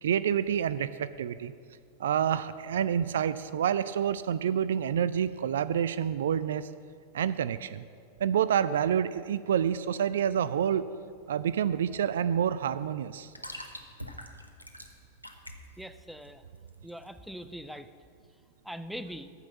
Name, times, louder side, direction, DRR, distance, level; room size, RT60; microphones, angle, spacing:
voice 1, 0.0-1.5 2.0-6.7 7.1-7.8 8.2-10.9 11.3-13.3, right 9 dB, 60° right, 15 dB, 0.3 m, -28 dB
sound 1, 10.8-17.5, equal, 90° right, 0.8 m, -47 dB
voice 2, 15.8-16.4 16.8-17.9 18.6-19.3, equal, ahead, 11 dB, 0.5 m, -41 dB
14.0 x 5.6 x 7.0 m, 2.2 s
figure-of-eight pair, 90°, 0 cm